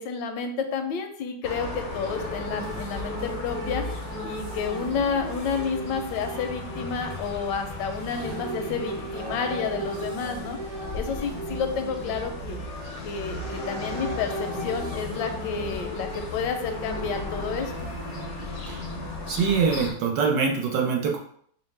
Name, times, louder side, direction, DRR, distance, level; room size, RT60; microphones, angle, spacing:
voice 1, 0.0-3.8 4.2-10.6 10.9-12.6 13.0-17.9, left 5 dB, 80° left, 6 dB, 1.2 m, -30 dB
sound 1, 1.4-19.9, left 2 dB, 65° left, 0.7 m, -36 dB
sound 2, 2.1-19.6, right 1 dB, 60° right, 1.4 m, -37 dB
voice 2, 19.3-21.2, right 5 dB, 80° right, 1 dB, 1.5 m, -24 dB
5.3 x 2.1 x 3.2 m, 0.62 s
omnidirectional pair, 2.0 m